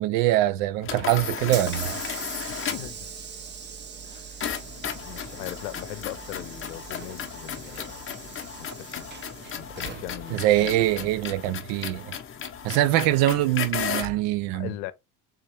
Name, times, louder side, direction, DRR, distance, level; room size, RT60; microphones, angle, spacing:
voice 1, 0.0-2.0 10.3-12.1 12.6-14.7, right 15 dB, 65° right, 0.6 m, -23 dB
sound 1, 0.8-3.0 4.4-14.2, left 8 dB, 25° left, 0.7 m, -35 dB
Hiss / Sliding door, 0.8-11.7, right 6 dB, 25° right, 0.6 m, -41 dB
voice 2, 2.6-3.1 4.0-4.6 5.0-8.2 8.6-9.1 9.6-11.1 11.5-11.6 14.5-14.9, left 14 dB, 75° left, 0.7 m, -40 dB
3.6 x 2.8 x 3.2 m
hypercardioid pair, 85°, 49 cm